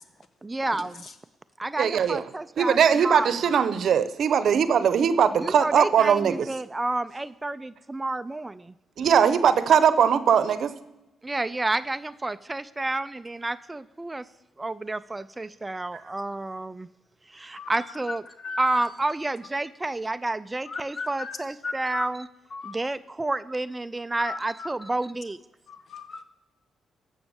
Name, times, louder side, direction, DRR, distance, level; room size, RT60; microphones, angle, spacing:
voice 1, 0.4-1.0 1.6-3.3 5.4-8.7 11.2-14.2 14.6-16.9 17.3-18.2 18.6-22.3 22.6-25.4, right 2 dB, 20° right, 15 dB, 0.4 m, -30 dB
voice 2, 1.8-2.2 2.6-6.4 9.0-10.7, right 7 dB, 65° right, 13 dB, 0.7 m, -20 dB
voice 3, 18.4-18.8 20.7-21.4 21.6-22.1 22.5-22.8 24.2-24.7 25.7-26.2, left 4 dB, 60° left, 10 dB, 1.2 m, -36 dB
14.0 x 6.3 x 7.1 m, 0.99 s
cardioid pair, 75°, 0 cm